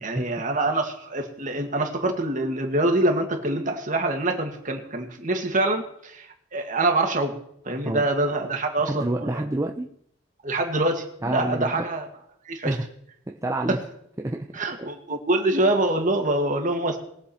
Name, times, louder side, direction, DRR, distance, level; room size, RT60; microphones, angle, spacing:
voice 1, 0.0-6.3 6.5-7.3 7.7-9.4 10.4-11.0 11.3-12.1 12.5-12.7 13.7-13.8 14.5-17.0, right 2 dB, 40° right, 3 dB, 1.9 m, -25 dB
voice 2, 8.9-9.9 11.2-11.9 12.6-12.9 13.3-13.8 14.2-14.5 14.8-14.9, right 1 dB, 15° right, 2 dB, 0.6 m, -28 dB
21.0 x 7.3 x 4.4 m, 0.73 s
head